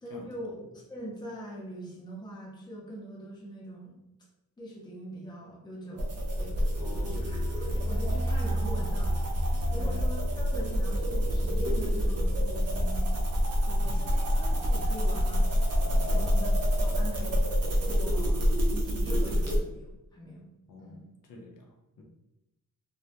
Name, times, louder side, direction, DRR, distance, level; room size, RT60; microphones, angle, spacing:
voice 1, 0.0-4.0 4.6-6.5 7.1-13.1 13.6-15.5 15.8-16.5 16.8-17.4 17.9-20.5 20.8-21.1, equal, 10° left, -4 dB, 0.5 m, -42 dB
sound 1, 6.0-19.6, equal, 45° right, 0.5 m, -27 dB
sound 2, 6.2-16.9 17.2-17.3 17.6-17.7, right 1 dB, 20° right, 0.9 m, -39 dB
voice 2, 6.8-7.4 9.7-10.1 13.8-13.9 16.0-16.3 20.7-22.0, left 2 dB, 65° left, 0 dB, 0.5 m, -47 dB
2.2 x 2.0 x 2.8 m, 0.91 s
wide cardioid pair, 165°, 35 cm